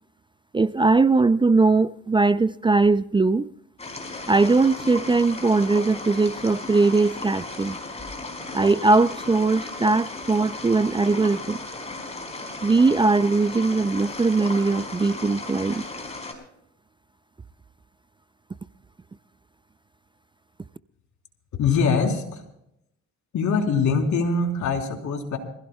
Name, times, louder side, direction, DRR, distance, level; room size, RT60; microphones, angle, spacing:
voice 1, 0.5-3.5 4.3-7.8 8.5-11.6 12.6-15.9, right 3 dB, 15° right, 14 dB, 0.4 m, -20 dB
sound 1, 3.8-16.3, left 2 dB, 20° left, 4.7 m, -36 dB
voice 2, 21.6-22.4 23.3-25.4, left 5 dB, 70° left, 2 dB, 3.6 m, -23 dB
26.5 x 16.0 x 2.3 m, 0.77 s
cardioid pair, 90°, 30 cm